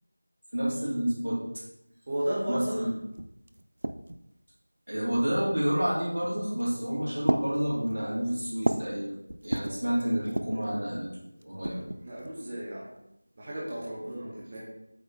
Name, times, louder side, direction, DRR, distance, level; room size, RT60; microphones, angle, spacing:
voice 1, 0.5-1.6 2.5-3.0 4.9-9.2 9.4-11.1 11.4-11.8, equal, 85° right, -4 dB, 2.6 m, -29 dB
voice 2, 2.1-2.9 11.7-12.8 13.4-14.6, right 1 dB, 15° right, -7 dB, 0.9 m, -34 dB
sound 1, 2.8-2.9 3.1-4.3 5.1-5.6 6.4-6.8 7.2-9.0 9.3-9.8 10.2-10.7 11.4-12.4, right 1 dB, 45° right, 0.4 m, -33 dB
8.0 x 3.9 x 3.8 m, 0.85 s
figure-of-eight pair, 180°, 0 cm